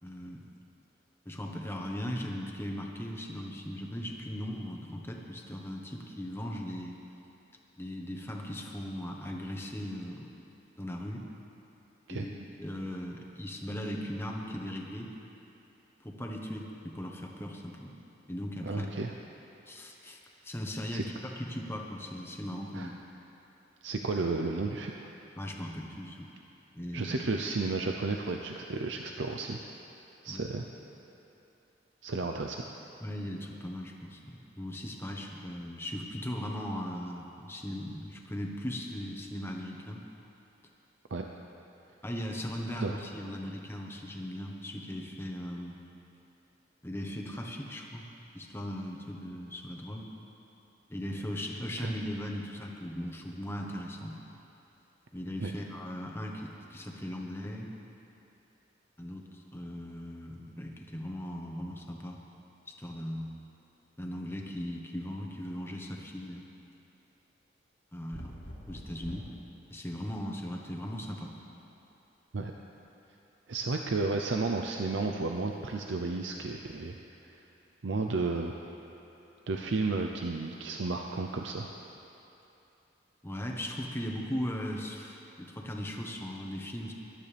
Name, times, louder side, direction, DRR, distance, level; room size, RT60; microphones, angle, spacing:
voice 1, 0.0-0.5 1.2-7.0 7.8-10.3 10.8-11.2 12.1-15.1 16.0-18.0 18.3-18.9 19.7-23.0 25.4-26.3 26.7-27.2 30.3-30.5 33.0-40.0 42.0-45.8 46.8-48.1 48.3-50.1 50.9-54.2 55.1-57.7 59.0-62.2 62.7-63.3 64.0-66.4 67.9-69.3 69.7-71.3 83.2-86.9, equal, 15° left, 0 dB, 1.2 m, -38 dB
voice 2, 18.6-19.1 20.9-21.0 22.7-22.9 23.8-24.9 26.9-29.6 30.2-30.6 32.0-32.6 41.1-41.3 42.8-43.0 51.8-51.9 55.4-55.5 72.3-72.5 73.5-77.0 77.8-78.5 79.5-81.7, right 3 dB, 80° right, 3 dB, 0.6 m, -32 dB
sound 1, 68.1-69.4 71.0-71.6, equal, 85° left, 2.4 m, -45 dB
21.5 x 12.0 x 3.4 m, 2.9 s
head